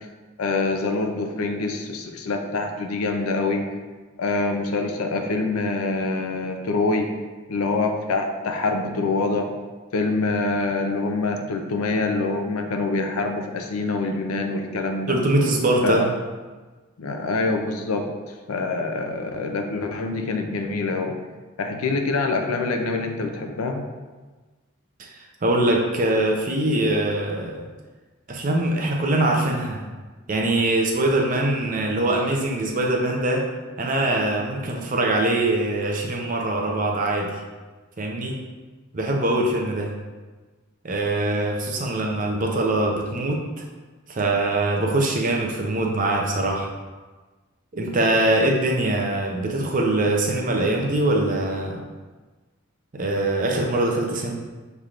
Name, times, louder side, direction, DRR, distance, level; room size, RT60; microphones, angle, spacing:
voice 1, 0.4-3.6 4.2-7.1 7.5-9.5 9.9-15.2 15.8-16.1 17.0-21.2 21.6-23.9, left 3 dB, 85° left, 4 dB, 0.5 m, -25 dB
voice 2, 15.1-16.1 25.0-27.6 28.3-29.8 30.3-33.4 33.8-37.3 38.0-38.4 38.9-39.9 40.8-43.4 44.1-46.7 47.7-51.8 52.9-54.3, right 1 dB, 40° right, 0 dB, 0.6 m, -23 dB
5.7 x 3.4 x 2.5 m, 1.3 s
head